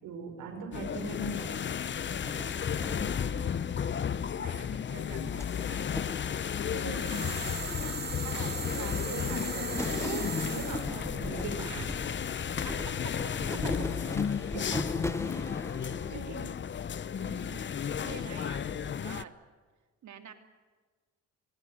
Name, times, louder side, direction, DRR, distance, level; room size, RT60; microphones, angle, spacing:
voice 1, 0.0-1.6 6.7-7.0 8.2-11.9 13.5-13.9 14.5-14.7 18.2-18.3, right 5 dB, 90° right, 5 dB, 6.0 m, -40 dB
sound 1, 0.7-19.2, left 8 dB, 40° left, 0.8 m, -33 dB
sound 2, 2.2-4.5 5.1-7.6 8.1-8.9 9.2-16.2, left 2 dB, 10° left, 1.2 m, -40 dB
voice 2, 2.9-3.7 4.4-6.1 6.6-8.2 12.6-13.3 14.7-14.8 16.1-16.6 17.1-17.6 18.0-19.4 20.0-20.3, right 8 dB, 70° right, 6 dB, 2.9 m, -48 dB
sound 3, 6.9-10.9, right 4 dB, 35° right, 5.4 m, -38 dB
26.5 x 20.5 x 7.9 m, 1.4 s
cardioid pair, 90°, 30 cm